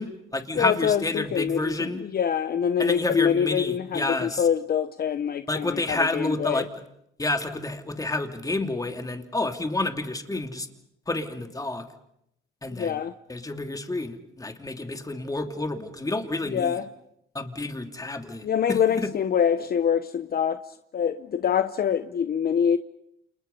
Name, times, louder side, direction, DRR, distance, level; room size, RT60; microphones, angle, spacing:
voice 1, 0.0-2.0 2.8-4.5 5.5-6.7 7.2-10.7 11.1-11.9 12.6-13.0 13.3-16.8 17.3-19.1, left 2 dB, 15° left, 2.9 m, -29 dB
voice 2, 0.5-6.6 12.8-13.1 16.5-16.8 18.4-20.6 20.9-22.8, left 8 dB, 50° left, 1.0 m, -25 dB
30.0 x 28.0 x 5.5 m
cardioid pair, 90°, 20 cm